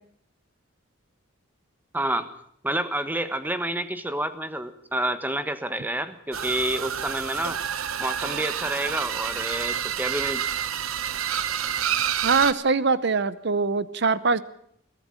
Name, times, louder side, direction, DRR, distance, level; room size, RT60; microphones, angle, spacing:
voice 1, 1.9-2.3 2.6-7.6 8.0-10.4, right 1 dB, 10° right, 11 dB, 1.4 m, -29 dB
sound 1, 6.3-12.5, right 9 dB, 90° right, 1.1 m, -28 dB
voice 2, 12.2-14.4, right 4 dB, 55° right, 16 dB, 0.8 m, -22 dB
22.5 x 14.5 x 8.7 m, 0.68 s
head